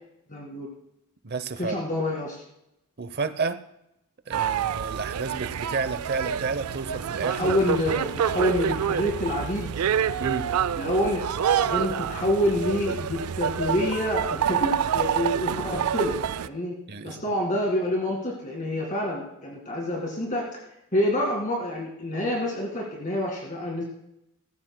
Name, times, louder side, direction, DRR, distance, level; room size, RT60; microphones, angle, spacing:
voice 1, 0.3-0.7 1.6-2.4 7.3-9.7 10.7-11.2 11.6-16.2 16.4-16.8 17.0-20.6 20.9-23.8, left 1 dB, 35° left, -2 dB, 2.0 m, -27 dB
voice 2, 1.2-1.8 3.0-3.6 4.3-7.6 10.2-10.5 16.9-17.2, right 4 dB, 50° right, 12 dB, 0.7 m, -31 dB
sound 1, 4.3-16.5, right 8 dB, 90° right, 0.4 m, -27 dB
17.5 x 15.5 x 2.2 m, 0.84 s
head